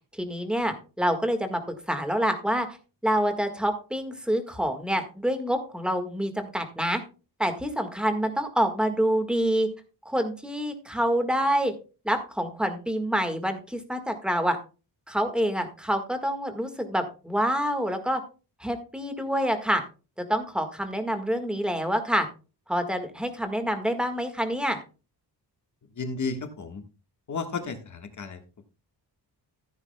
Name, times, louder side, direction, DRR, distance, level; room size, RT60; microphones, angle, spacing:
voice 1, 0.1-1.6 1.9-2.7 3.0-7.0 7.4-9.7 10.0-11.7 12.0-14.6 15.1-18.2 18.6-19.8 20.2-22.3 22.7-24.8, equal, ahead, 7 dB, 1.6 m, -27 dB
voice 2, 26.0-26.8 27.3-28.4, left 4 dB, 45° left, 6 dB, 1.5 m, -33 dB
15.0 x 9.6 x 2.2 m, 0.33 s
wide cardioid pair, 155°, 41 cm